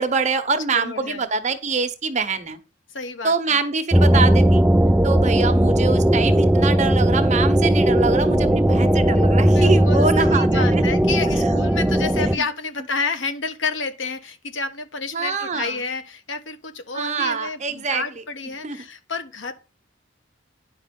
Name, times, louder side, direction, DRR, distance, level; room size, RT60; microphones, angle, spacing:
voice 1, 0.0-2.6 3.2-4.6 5.0-10.8 11.3-11.5 12.2-12.3 15.1-15.8 16.9-18.0 18.6-18.8, right 4 dB, 40° right, 1.0 m, -24 dB
voice 2, 0.7-1.3 2.9-3.6 9.5-19.5, left 4 dB, 90° left, 1.2 m, -30 dB
sound 1, 3.9-12.4, right 1 dB, 5° right, 0.4 m, -17 dB
10.0 x 5.4 x 5.3 m
head